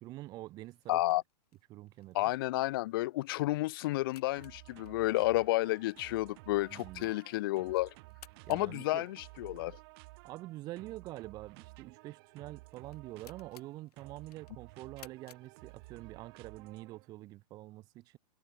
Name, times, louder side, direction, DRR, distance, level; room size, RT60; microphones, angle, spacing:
voice 1, 0.0-1.0 1.7-2.3 6.7-7.1 8.5-9.0 10.2-18.2, right 17 dB, 20° right, 0.6 m, -46 dB
sound 1, 0.6-16.2, left 10 dB, 75° left, 5.2 m, -63 dB
voice 2, 0.9-1.2 2.1-7.9 8.5-9.8, left 18 dB, 35° left, 0.4 m, -31 dB
sound 2, 4.4-17.1, right 27 dB, 35° right, 3.0 m, -54 dB
hypercardioid pair, 160°, 20 cm